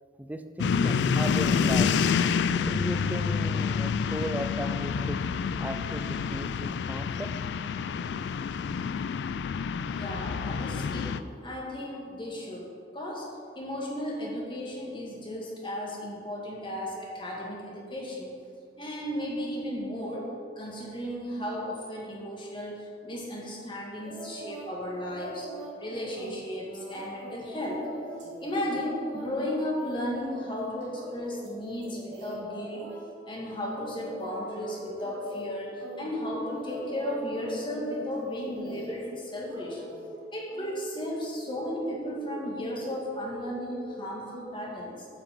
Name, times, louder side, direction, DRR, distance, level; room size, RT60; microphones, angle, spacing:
voice 1, 0.2-1.9 2.7-5.2 5.6-7.3, right 1 dB, 10° right, 8 dB, 0.4 m, -36 dB
sound 1, 0.6-11.2, left 6 dB, 70° left, 0.3 m, -28 dB
voice 2, 9.9-13.3 13.6-18.3 18.8-25.5 25.8-27.9 28.4-32.9 33.3-39.8 40.3-45.1, left 1 dB, 25° left, -3 dB, 1.7 m, -35 dB
sound 2, 24.0-24.7 25.1-33.0 33.4-34.7 35.0-35.5 35.8-39.1 39.4-40.1 40.5-40.7, right 1 dB, 70° right, 2.0 m, -44 dB
sound 3, 34.2-44.1, left 1 dB, 25° right, 2.2 m, -44 dB
9.1 x 5.9 x 5.0 m, 2.3 s
head